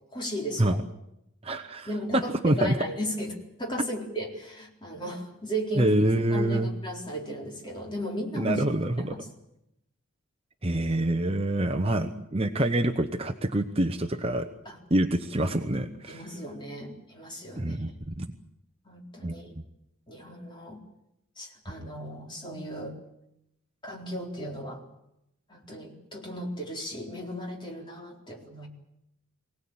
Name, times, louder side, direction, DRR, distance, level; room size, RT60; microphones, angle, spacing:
voice 1, 0.1-0.8 1.9-5.9 6.3-8.6 9.0-9.3 14.7-14.8 16.1-17.9 18.9-19.5 20.1-20.8 21.4-23.0 23.8-24.8 25.5-28.7, equal, 20° left, 0 dB, 4.0 m, -35 dB
voice 2, 1.4-2.8 5.8-6.7 8.3-9.1 10.6-14.5 14.9-16.2 17.6-18.3 19.2-19.3, right 1 dB, 25° right, 7 dB, 0.9 m, -26 dB
24.0 x 18.0 x 8.7 m, 0.83 s
head